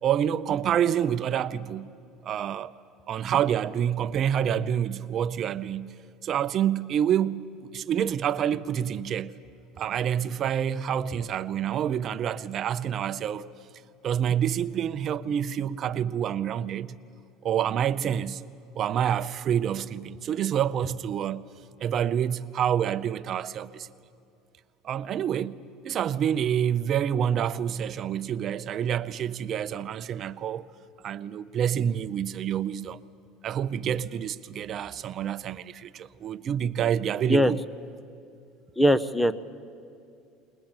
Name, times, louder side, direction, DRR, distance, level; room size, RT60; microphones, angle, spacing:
voice 1, 0.0-1.9 2.2-2.7 3.1-9.3 9.8-13.5 14.0-17.0 17.4-18.4 18.8-21.5 21.8-23.9 24.8-30.7 31.0-33.0 33.4-37.6, right 9 dB, 40° right, 0.7 m, -27 dB
voice 2, 38.8-39.3, equal, 5° left, 0.7 m, -20 dB
22.0 x 19.5 x 8.9 m
supercardioid pair, 130°, 0 cm